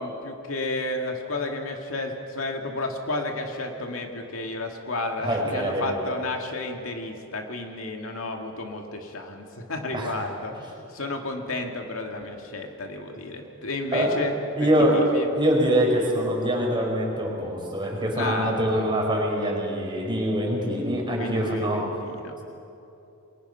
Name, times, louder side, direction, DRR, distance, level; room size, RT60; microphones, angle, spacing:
voice 1, 0.0-14.3 14.6-15.3 18.1-18.7 21.2-22.4, left 2 dB, 75° left, 3 dB, 2.3 m, -32 dB
voice 2, 5.2-5.9 9.9-10.1 13.9-14.1 14.5-15.0 15.3-21.8, equal, 20° right, -1 dB, 4.9 m, -24 dB
29.0 x 22.5 x 5.8 m, 2.8 s
head